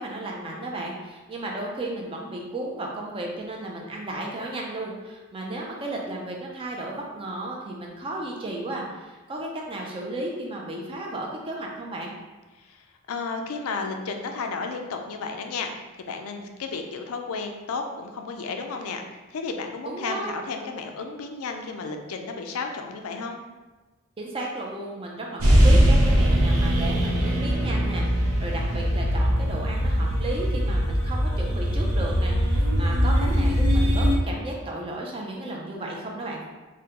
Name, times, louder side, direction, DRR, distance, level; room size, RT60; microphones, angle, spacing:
voice 1, 0.0-12.1 19.9-20.4 24.2-36.4, right 1 dB, 25° right, -1 dB, 0.4 m, -34 dB
voice 2, 13.1-19.0 19.3-23.4, left 4 dB, 90° left, 5 dB, 0.4 m, -33 dB
sound 1, 25.4-34.2, equal, 90° right, 0.7 m, -21 dB
3.6 x 2.1 x 2.9 m, 1.2 s
head